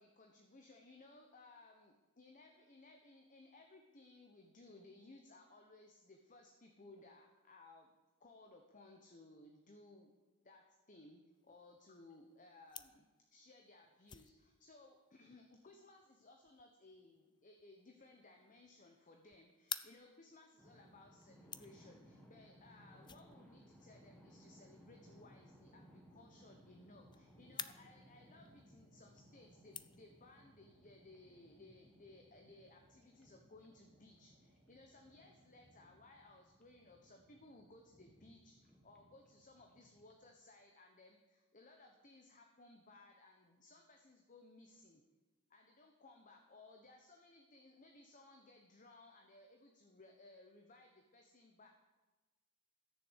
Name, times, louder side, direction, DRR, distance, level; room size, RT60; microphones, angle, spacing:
voice 1, 0.0-7.9 8.2-10.1 10.4-45.0 45.5-51.7, left 2 dB, 35° left, 3 dB, 1.1 m, -61 dB
sound 1, 11.3-30.4, left 8 dB, 20° left, 0.4 m, -55 dB
sound 2, 20.6-40.3, equal, 5° left, 1.6 m, -64 dB
sound 3, 27.4-35.7, right 3 dB, 40° right, 1.0 m, -79 dB
14.0 x 7.0 x 8.2 m, 1.2 s
head